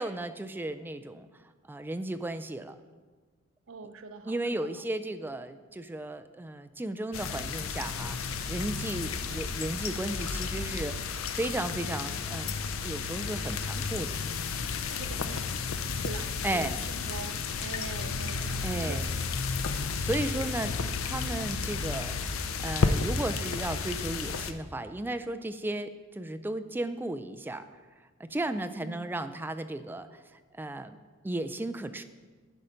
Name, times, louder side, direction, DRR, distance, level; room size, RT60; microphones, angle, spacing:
voice 1, 0.0-1.4 1.7-2.8 4.2-12.6 12.8-14.2 16.4-16.7 18.6-19.0 20.0-20.8 21.0-27.7 28.2-31.0 31.2-32.0, right 1 dB, 10° right, 11 dB, 0.3 m, -35 dB
voice 2, 3.7-4.7 14.9-15.5 16.0-17.4 17.6-19.2 20.2-20.5 28.8-29.1, right 3 dB, 70° right, 8 dB, 0.6 m, -43 dB
sound 1, 7.1-24.5, left 5 dB, 75° left, 0.5 m, -32 dB
10.5 x 5.6 x 5.1 m, 1.4 s
head